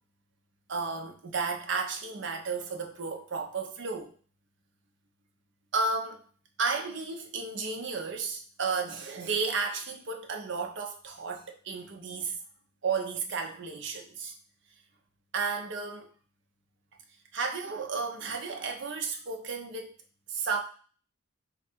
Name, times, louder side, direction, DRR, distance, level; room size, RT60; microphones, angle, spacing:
voice 1, 0.7-4.1 5.7-6.2 6.6-12.4 12.8-14.3 15.3-16.1 17.3-19.9 20.3-20.6, right 4 dB, 60° right, 3 dB, 0.6 m, -33 dB
3.2 x 2.4 x 4.4 m, 0.42 s
head